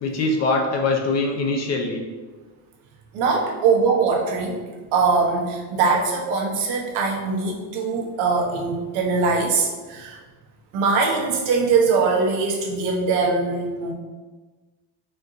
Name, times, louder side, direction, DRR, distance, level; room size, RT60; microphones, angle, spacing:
voice 1, 0.0-2.0, left 3 dB, 35° left, 2 dB, 0.6 m, -23 dB
voice 2, 3.1-4.6 4.9-10.2 10.7-13.9, right 4 dB, 80° right, -1 dB, 1.1 m, -22 dB
4.4 x 2.5 x 3.8 m, 1.3 s
cardioid pair, 135°, 46 cm